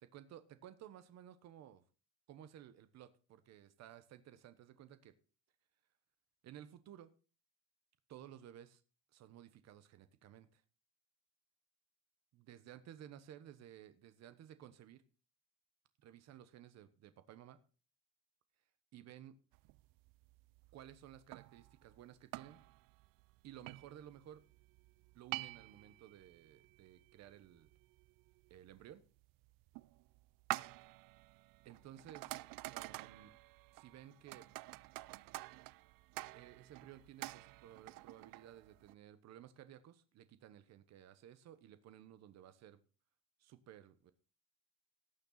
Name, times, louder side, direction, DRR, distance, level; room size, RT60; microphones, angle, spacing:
voice 1, 0.0-1.8 2.3-5.1 6.4-7.1 8.1-8.8 9.1-10.6 12.3-15.0 16.0-17.6 18.9-19.3 20.7-22.6 23.4-24.4 25.1-27.7 28.5-29.0 31.6-32.3 32.7-33.3 33.7-34.5 36.3-42.8 43.4-44.1, right 11 dB, 50° right, 12 dB, 1.2 m, -56 dB
sound 1, 19.5-38.9, right 21 dB, 85° right, 0.5 m, -49 dB
18.0 x 6.8 x 4.0 m, 0.35 s
cardioid pair, 175°, 33 cm